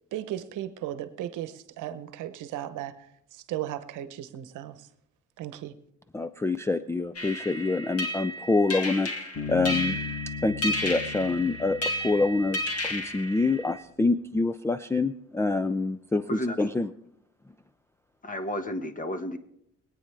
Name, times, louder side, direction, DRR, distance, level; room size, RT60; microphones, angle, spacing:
voice 1, 0.1-3.0 3.3-4.9 5.4-5.8, right 12 dB, 90° right, 13 dB, 0.9 m, -36 dB
voice 2, 6.1-10.0 10.4-16.9, left 3 dB, 10° left, 12 dB, 0.4 m, -26 dB
sound 1, 7.2-13.8, left 1 dB, 50° left, 2.2 m, -33 dB
Bass guitar, 9.3-13.0, left 6 dB, 75° left, 6.2 m, -38 dB
voice 3, 16.3-16.7 18.2-19.4, left 1 dB, 25° left, 8 dB, 1.4 m, -32 dB
24.0 x 9.1 x 3.3 m, 0.75 s
cardioid pair, 90°, 30 cm